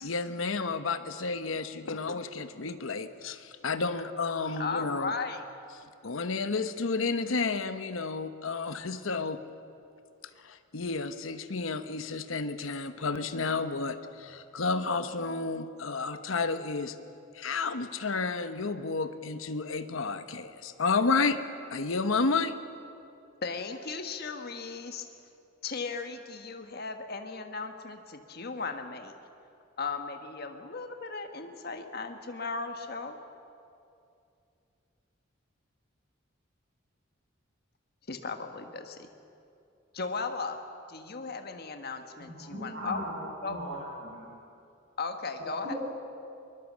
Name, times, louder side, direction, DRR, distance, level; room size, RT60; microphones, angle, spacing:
voice 1, 0.0-5.1 6.0-9.4 10.4-17.0 17.3-21.4 21.7-22.6, left 4 dB, 85° left, 10 dB, 1.0 m, -31 dB
voice 2, 4.5-5.4 23.4-25.0 25.6-29.1 29.8-33.2 38.1-39.1 39.9-40.6 40.9-43.0 43.4-43.6 45.0-45.7, left 4 dB, 50° left, 6 dB, 1.4 m, -36 dB
voice 3, 42.2-44.2 45.6-45.8, right 1 dB, 60° right, -7 dB, 7.3 m, -38 dB
23.0 x 21.5 x 7.4 m, 2.6 s
head